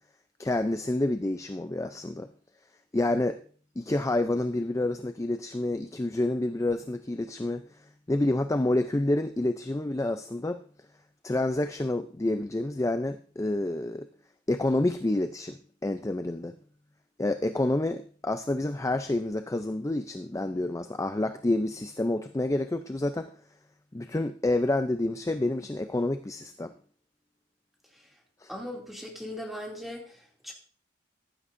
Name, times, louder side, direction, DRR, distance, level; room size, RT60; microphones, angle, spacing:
voice 1, 0.4-2.3 2.9-3.4 3.8-7.6 8.1-10.6 11.2-14.1 14.5-16.6 17.2-23.3 23.9-26.7 28.4-28.5, left 2 dB, 15° left, 8 dB, 0.5 m, -28 dB
voice 2, 28.5-30.5, left 1 dB, ahead, -1 dB, 2.6 m, -39 dB
15.0 x 11.0 x 2.6 m, 0.43 s
head